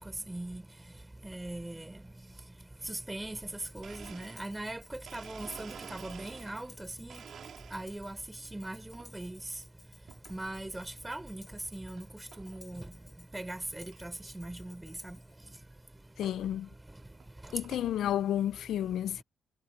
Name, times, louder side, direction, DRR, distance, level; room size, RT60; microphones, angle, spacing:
voice 1, 0.3-0.6 1.2-1.8 2.9-3.4 3.7-7.2 7.7-8.2 8.5-9.4 10.3-11.4 11.7-12.1 12.4-12.8 13.3-15.2, right 1 dB, 15° right, 5.4 m, -40 dB
Tambourine, 3.6-15.3, left 3 dB, 25° left, 7.0 m, -59 dB
Domestic sounds home sounds, 3.8-6.8 7.1-8.1 8.6-9.1 10.1-10.4 11.0-11.1 12.0-12.1 12.3-12.6 13.1-13.2 13.4-13.5 13.9-14.0 15.3-15.4 16.2-16.4 17.0-17.9, right 7 dB, 60° right, 5.0 m, -50 dB
voice 2, 16.2-16.7 17.5-19.2, left 11 dB, 70° left, 0.8 m, -31 dB
hypercardioid pair, 50°, 0 cm